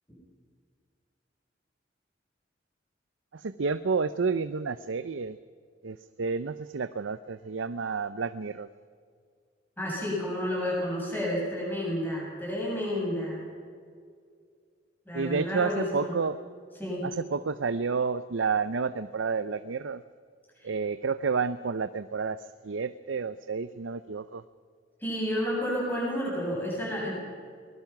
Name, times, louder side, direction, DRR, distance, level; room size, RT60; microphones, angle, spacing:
voice 1, 3.3-5.4 5.8-8.7 15.1-16.4 17.0-20.0 20.6-24.4, right 5 dB, 90° right, 13 dB, 0.6 m, -30 dB
voice 2, 9.8-13.4 15.1-16.1 16.8-17.1 20.6-20.7 25.0-27.2, equal, 10° left, -5 dB, 7.5 m, -30 dB
22.5 x 20.0 x 6.0 m, 2.1 s
head